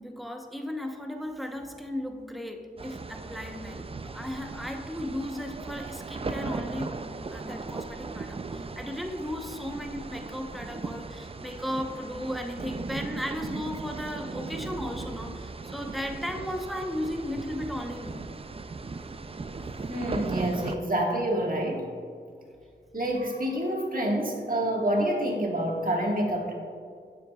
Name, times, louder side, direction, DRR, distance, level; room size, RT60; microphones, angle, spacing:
voice 1, 0.0-18.2 19.4-19.6, left 1 dB, ahead, 3 dB, 0.9 m, -35 dB
sound 1, 2.8-20.8, right 3 dB, 30° right, 0.4 m, -38 dB
voice 2, 19.9-21.9 22.9-26.5, right 1 dB, 45° right, -1 dB, 1.6 m, -27 dB
9.1 x 7.1 x 2.3 m, 2.2 s
cardioid pair, 45°, 19 cm